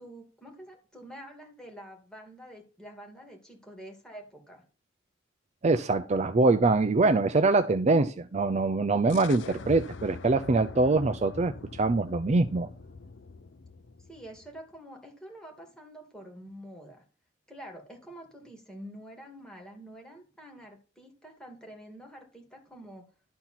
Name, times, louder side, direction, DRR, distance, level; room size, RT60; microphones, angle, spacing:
voice 1, 0.0-4.6 14.1-17.0 17.5-23.1, right 1 dB, 5° left, 2.8 m, -47 dB
voice 2, 5.6-12.7, right 3 dB, 40° right, 0.5 m, -24 dB
sound 1, 9.1-14.6, left 4 dB, 85° left, 0.7 m, -44 dB
12.0 x 4.4 x 5.8 m
head